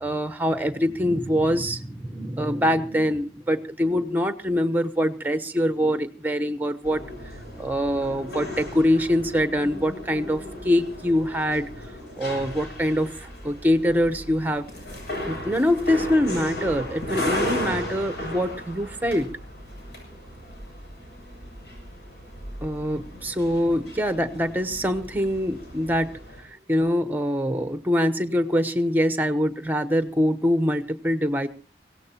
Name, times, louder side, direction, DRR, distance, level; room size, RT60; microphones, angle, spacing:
voice 1, 0.0-7.0 7.6-11.7 12.2-14.6 15.3-19.3 22.6-31.5, equal, 10° right, 11 dB, 0.9 m, -24 dB
sound 1, 6.8-26.4, left 1 dB, 70° left, 7.2 m, -36 dB
24.0 x 17.0 x 2.9 m, 0.35 s
head